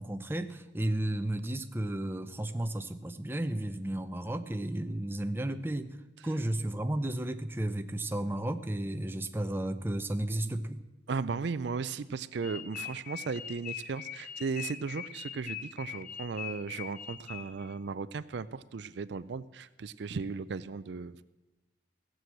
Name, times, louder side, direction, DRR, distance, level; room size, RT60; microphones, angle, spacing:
voice 1, 0.0-6.0 6.2-10.8, right 1 dB, 10° right, 8 dB, 0.6 m, -33 dB
voice 2, 11.1-21.2, right 4 dB, 65° right, 15 dB, 0.4 m, -36 dB
sound 1, 12.4-17.7, left 9 dB, 45° left, 0.8 m, -42 dB
15.5 x 7.7 x 7.7 m, 1.1 s
head